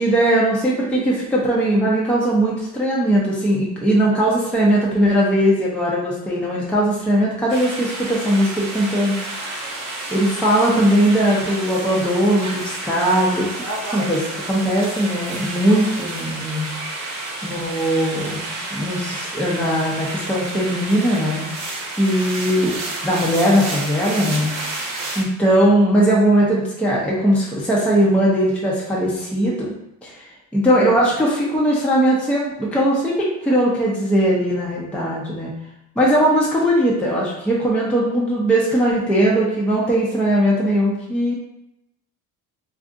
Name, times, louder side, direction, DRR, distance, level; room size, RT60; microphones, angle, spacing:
voice 1, 0.0-9.6 10.1-13.5 13.8-16.7 17.4-21.5 22.0-24.5 25.2-29.7 30.0-30.2 30.5-35.5 36.0-41.3, right 1 dB, 5° left, -5 dB, 0.5 m, -19 dB
sound 1, 7.5-25.2, right 2 dB, 45° right, 0.8 m, -30 dB
2.5 x 2.4 x 3.6 m, 0.84 s
cardioid pair, 120°, 36 cm